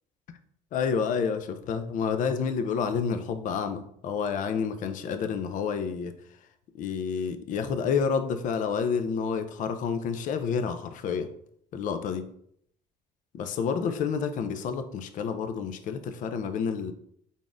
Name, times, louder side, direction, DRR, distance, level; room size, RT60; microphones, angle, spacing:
voice 1, 0.7-6.4 6.7-11.3 11.7-12.3 13.3-16.9, left 6 dB, 55° left, 9 dB, 0.4 m, -29 dB
3.9 x 3.5 x 2.5 m, 0.67 s
cardioid pair, 125°, 16 cm